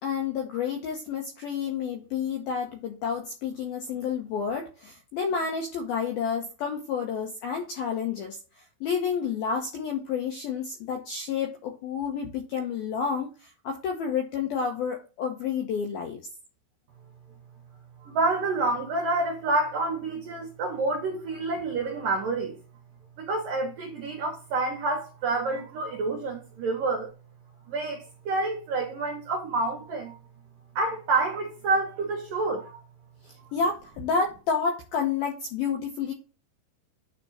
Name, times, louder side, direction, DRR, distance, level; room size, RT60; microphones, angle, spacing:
voice 1, 0.0-8.4 8.8-16.2 33.2-36.1, left 6 dB, 75° left, 2.2 m, -30 dB
voice 2, 18.0-22.6 23.2-27.1 27.7-30.2 30.8-32.8, right 3 dB, 65° right, 2.3 m, -28 dB
9.8 x 3.5 x 4.2 m
omnidirectional pair, 5.6 m